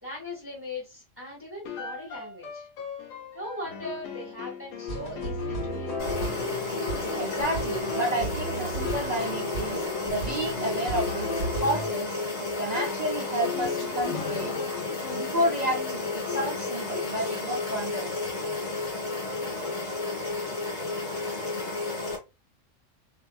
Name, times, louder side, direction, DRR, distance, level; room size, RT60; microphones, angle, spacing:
voice 1, 0.0-2.7 3.3-6.1, left 1 dB, 10° right, 1.4 m, -39 dB
sound 1, 1.6-17.0, left 7 dB, 90° left, 1.1 m, -39 dB
sound 2, 4.9-11.9, equal, 35° left, 1.3 m, -33 dB
sound 3, 6.0-22.2, left 3 dB, 65° left, 1.4 m, -32 dB
voice 2, 7.2-11.3 11.6-12.1 12.6-14.6 15.1-18.3, right 1 dB, 55° right, 0.4 m, -31 dB
2.7 x 2.6 x 2.2 m
omnidirectional pair, 1.3 m